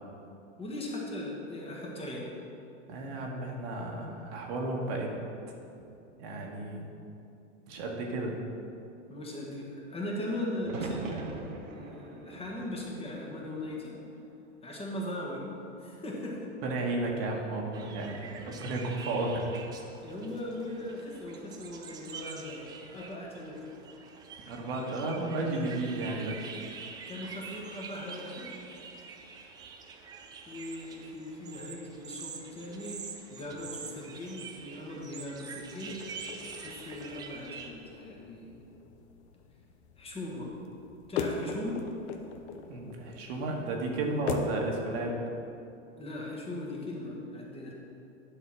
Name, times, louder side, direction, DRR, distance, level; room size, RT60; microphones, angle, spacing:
voice 1, 0.6-2.3 9.1-14.0 14.6-15.4 15.8-16.6 20.0-23.6 27.1-28.5 30.5-33.0 33.3-36.0 36.6-38.6 40.0-40.5 41.1-41.8 46.0-47.7, left 1 dB, 15° left, -2 dB, 1.6 m, -39 dB
voice 2, 2.9-5.1 6.2-6.9 7.7-8.4 16.6-19.5 24.5-26.4 42.7-45.2, right 2 dB, 55° right, 0 dB, 1.5 m, -33 dB
sound 1, 10.6-14.7 15.0-15.8 17.7-18.2, right 4 dB, 90° right, 1.0 m, -43 dB
sound 2, 17.7-37.7, right 5 dB, 10° right, 0.3 m, -46 dB
sound 3, 35.9-44.6, left 5 dB, 60° left, 0.9 m, -40 dB
10.0 x 4.1 x 6.0 m, 2.7 s
hypercardioid pair, 120°, 37 cm